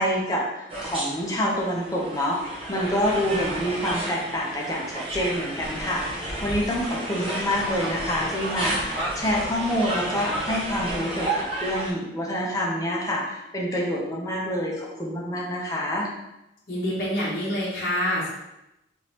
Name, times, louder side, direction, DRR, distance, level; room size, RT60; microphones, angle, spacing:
voice 1, 0.0-2.4 2.7-16.1, equal, 20° left, -3 dB, 0.7 m, -27 dB
sound 1, 0.7-11.9, right 1 dB, 30° right, 1.0 m, -31 dB
voice 2, 16.7-18.3, equal, 50° left, -7 dB, 0.9 m, -26 dB
3.6 x 3.0 x 2.9 m, 0.90 s
head